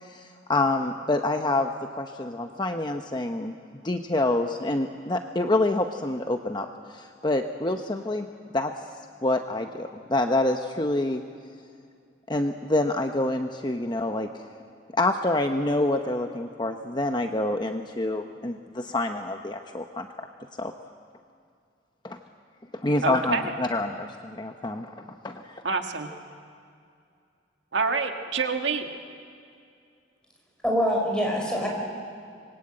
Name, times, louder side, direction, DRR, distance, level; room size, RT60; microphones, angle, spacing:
voice 1, 0.0-1.7 2.0-3.5 3.8-8.3 8.5-8.7 9.2-11.2 12.3-14.4 14.9-20.1 20.6-20.7 22.0-22.2 22.7-25.6, left 2 dB, 25° left, 5 dB, 0.8 m, -27 dB
voice 2, 23.0-23.5 25.6-26.1 27.7-28.9, right 4 dB, 75° right, 4 dB, 1.8 m, -27 dB
voice 3, 30.6-31.7, equal, 5° left, -1 dB, 5.0 m, -24 dB
25.5 x 21.5 x 8.9 m, 2.3 s
head